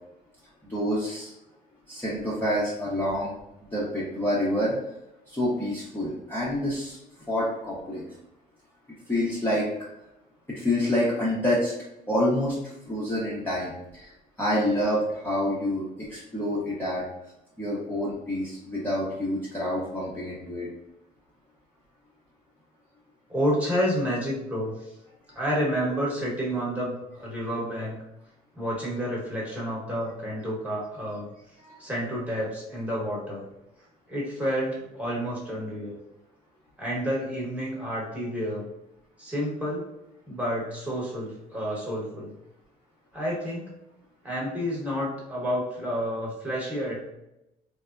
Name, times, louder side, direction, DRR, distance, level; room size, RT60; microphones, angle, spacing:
voice 1, 0.6-1.3 1.9-3.3 3.7-4.7 5.3-7.0 7.3-8.0 9.1-9.7 10.5-11.7 12.1-14.1 14.4-17.0 17.6-20.7 31.6-31.8, left 1 dB, 10° left, -8 dB, 0.7 m, -27 dB
voice 2, 23.3-24.7 25.3-28.0 28.5-31.3 31.8-33.4 34.1-36.0 36.8-38.6 39.2-39.8 40.3-42.3 43.1-43.7 44.2-47.1, equal, 10° right, -6 dB, 1.1 m, -29 dB
3.2 x 2.1 x 2.4 m, 0.87 s
cardioid pair, 110°, 17 cm